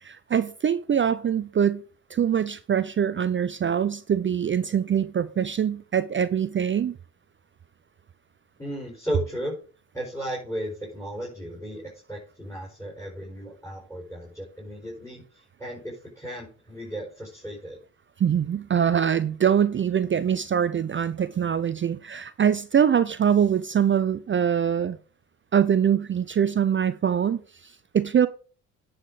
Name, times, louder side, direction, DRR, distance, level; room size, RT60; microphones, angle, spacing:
voice 1, 0.0-1.8 2.1-7.0 18.2-25.0 25.5-28.3, right 8 dB, 25° right, 0.5 m, -23 dB
voice 2, 8.6-9.5 9.9-17.8, equal, 5° left, 4.8 m, -35 dB
9.8 x 5.8 x 4.9 m
hypercardioid pair, 50°, 44 cm